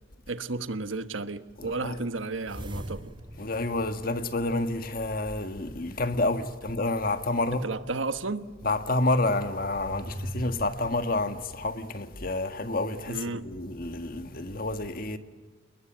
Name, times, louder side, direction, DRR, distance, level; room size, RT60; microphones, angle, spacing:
voice 1, 0.3-3.1 7.5-8.5 13.1-13.5, right 3 dB, 90° right, 1.3 m, -33 dB
voice 2, 1.6-2.0 3.4-7.6 8.6-15.2, left 2 dB, 50° left, 1.7 m, -29 dB
sound 1, 2.4-4.8 5.6-7.1 7.8-7.9 9.4-11.9, equal, 25° right, 2.4 m, -42 dB
29.5 x 20.5 x 9.2 m
head